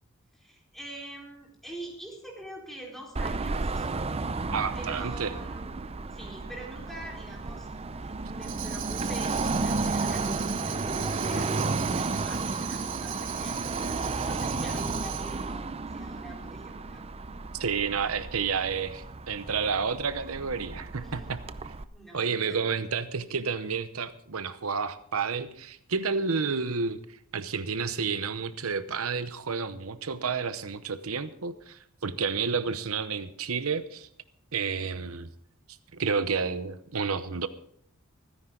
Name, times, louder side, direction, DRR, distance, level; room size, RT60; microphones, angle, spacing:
voice 1, 0.3-3.9 4.7-5.7 6.1-7.7 8.0-17.0 21.0-21.4 21.9-22.6, right 1 dB, ahead, -2 dB, 4.3 m, -45 dB
Car passing by / Traffic noise roadway noise / Engine, 3.2-21.8, right 3 dB, 30° right, 0.6 m, -33 dB
voice 2, 4.5-5.3 17.5-21.4 22.1-34.1 34.5-35.3 35.9-37.5, right 5 dB, 85° right, 12 dB, 0.9 m, -30 dB
Tambourine, 8.4-15.5, right 11 dB, 60° right, 1.5 m, -38 dB
24.5 x 10.5 x 3.9 m, 0.64 s
head